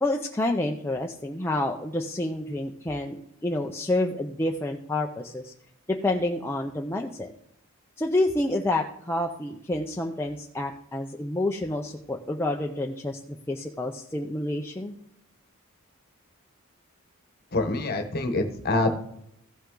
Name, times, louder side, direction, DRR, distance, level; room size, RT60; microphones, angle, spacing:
voice 1, 0.0-5.5 6.0-7.3 8.0-15.0, left 1 dB, 10° left, 1 dB, 0.5 m, -28 dB
voice 2, 17.5-18.9, left 2 dB, 45° left, 6 dB, 1.1 m, -25 dB
15.5 x 5.7 x 3.8 m, 0.74 s
head